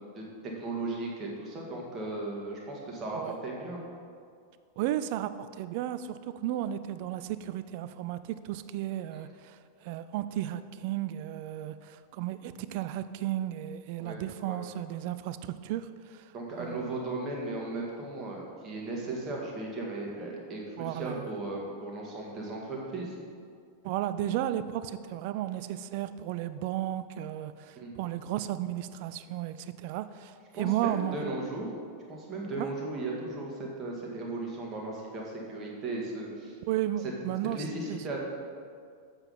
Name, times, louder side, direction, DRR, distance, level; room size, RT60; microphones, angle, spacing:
voice 1, 0.1-3.8 9.1-9.2 14.0-14.6 16.3-23.2 27.8-27.9 30.5-31.7 32.1-36.6 37.5-38.2, right 2 dB, 30° right, -2 dB, 1.9 m, -36 dB
voice 2, 4.8-16.3 16.6-17.0 20.8-21.3 23.8-31.3 32.6-32.7 36.7-37.6 37.9-38.0, right 12 dB, 45° right, 13 dB, 0.4 m, -34 dB
7.8 x 6.2 x 5.6 m, 2.2 s
figure-of-eight pair, 90°, 0 cm